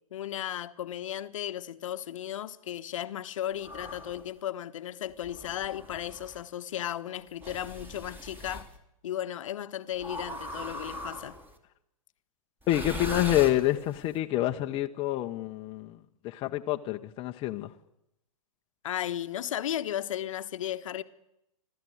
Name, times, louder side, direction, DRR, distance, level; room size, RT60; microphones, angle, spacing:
voice 1, 0.1-8.7 9.0-11.3 18.8-21.0, left 11 dB, 60° left, 1.3 m, -35 dB
sound 1, 3.6-4.3 5.2-6.4 7.4-8.7 10.0-11.5 12.6-14.0, equal, 10° right, 2.8 m, -40 dB
voice 2, 12.7-16.0 16.2-17.7, left 14 dB, 30° left, 1.1 m, -27 dB
30.0 x 13.0 x 8.1 m
hypercardioid pair, 115°, 19 cm